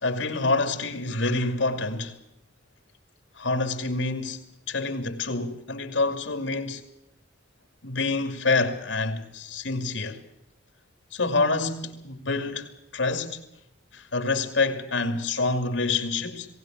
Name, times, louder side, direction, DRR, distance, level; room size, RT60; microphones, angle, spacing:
voice 1, 0.0-2.2 3.4-6.8 7.8-10.2 11.1-13.4 13.9-16.5, left 3 dB, 90° left, 2.5 m, -27 dB
19.0 x 18.5 x 7.6 m
head